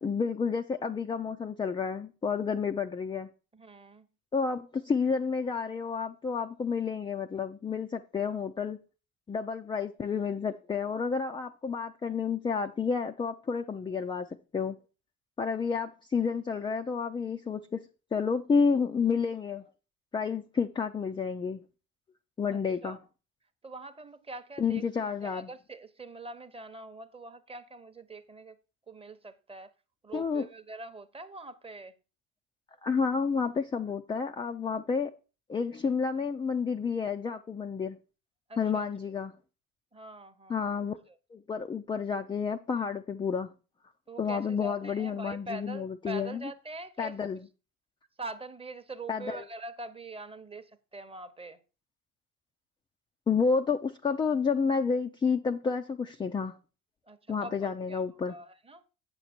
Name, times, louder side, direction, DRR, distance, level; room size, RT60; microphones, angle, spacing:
voice 1, 0.0-3.3 4.3-8.8 9.3-14.8 15.4-17.8 18.1-19.6 20.1-21.6 22.4-23.0 24.6-25.5 30.1-30.5 32.8-35.1 35.5-38.0 38.6-39.3 40.5-41.0 41.3-43.5 44.2-46.4 47.0-47.4 49.1-49.4 53.3-56.6 57.3-58.4, left 5 dB, 15° left, 0.3 m, -30 dB
voice 2, 3.5-4.1 22.5-23.0 23.6-24.8 25.2-28.6 28.9-29.7 30.0-31.9 38.5-38.9 39.9-40.6 41.1-41.2 44.1-47.1 48.2-51.6 57.1-58.0 58.3-58.8, right 2 dB, 15° right, 0.8 m, -44 dB
8.3 x 6.8 x 4.3 m
hypercardioid pair, 75°, 41 cm